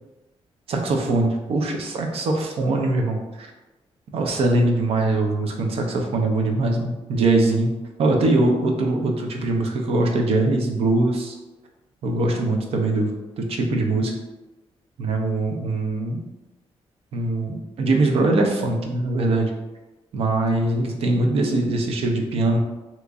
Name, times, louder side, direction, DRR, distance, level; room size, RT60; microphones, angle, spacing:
voice 1, 0.7-3.5 4.1-7.7 8.0-11.4 12.0-13.1 13.4-14.1 15.0-16.2 17.1-19.5 20.1-22.6, right 2 dB, 65° right, 2 dB, 0.6 m, -22 dB
2.9 x 2.5 x 3.5 m, 1.1 s
wide cardioid pair, 155°, 11 cm